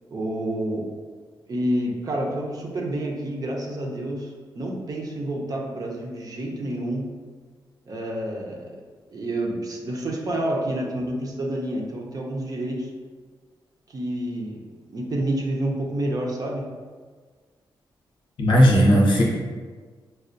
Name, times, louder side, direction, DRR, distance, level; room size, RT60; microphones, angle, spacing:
voice 1, 0.1-0.9 1.5-7.1 7.9-8.7 9.1-12.9 13.9-16.7, right 1 dB, 45° right, -1 dB, 0.6 m, -29 dB
voice 2, 18.4-19.2, equal, 70° left, -3 dB, 0.7 m, -16 dB
4.2 x 2.3 x 2.5 m, 1.5 s
cardioid pair, 95°, 9 cm